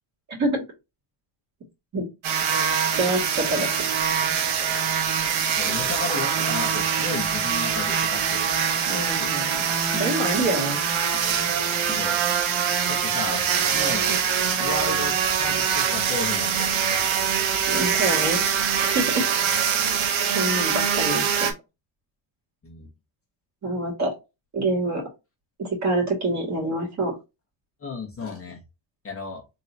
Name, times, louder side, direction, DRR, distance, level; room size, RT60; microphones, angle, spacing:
voice 1, 0.3-0.6 1.9-2.1 3.0-3.9 8.9-9.7 10.0-10.8 17.7-18.4 18.8-19.3 20.3-21.5 23.6-24.2 24.5-25.0 25.6-27.1, right 2 dB, 35° right, -2 dB, 2.4 m, -26 dB
sound 1, 2.2-21.5, right 7 dB, 70° right, 1.2 m, -24 dB
voice 2, 5.5-8.5 11.9-12.2 12.9-13.4 13.7-14.1 14.6-17.0 22.6-22.9 27.8-28.6 29.0-29.4, left 3 dB, 25° left, 0 dB, 1.2 m, -34 dB
sound 2, 5.7-5.8 7.1-7.5 7.9-8.1 9.2-9.5 9.9-10.3 11.1-11.3 11.6-12.1 13.3-13.4 14.1-14.2, left 3 dB, 10° left, 1.5 m, -40 dB
4.0 x 3.6 x 2.8 m, 0.24 s
cardioid pair, 160°, 50 cm